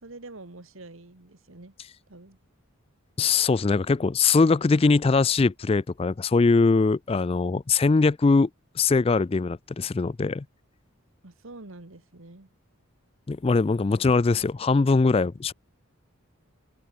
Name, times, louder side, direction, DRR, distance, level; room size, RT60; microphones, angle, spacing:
voice 1, 0.0-1.7 2.1-2.4 11.2-12.5, right 2 dB, 70° right, 1.7 m, -46 dB
voice 2, 3.2-8.5 8.8-10.4 13.3-15.5, left 4 dB, 25° left, 0.3 m, -21 dB
open air
head